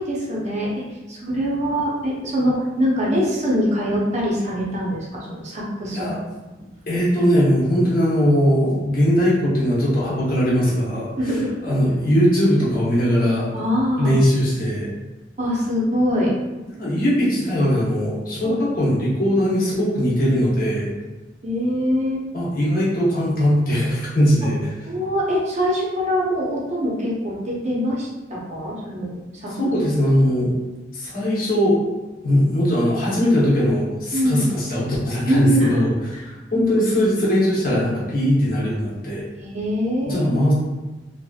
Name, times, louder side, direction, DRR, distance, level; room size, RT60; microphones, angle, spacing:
voice 1, 0.0-6.2 11.2-11.5 13.5-14.2 15.4-16.3 18.4-18.6 21.4-22.2 24.8-29.5 34.1-34.4 35.3-35.8 36.1-36.3 36.5-36.7 39.4-40.3, equal, 40° right, -5 dB, 0.6 m, -23 dB
voice 2, 6.9-13.5 14.0-14.9 16.8-20.9 22.3-24.6 29.5-30.5 30.9-31.8 32.2-35.9 36.5-39.2 40.1-40.5, equal, 50° left, -6 dB, 0.8 m, -20 dB
2.8 x 2.5 x 2.3 m, 1.1 s
head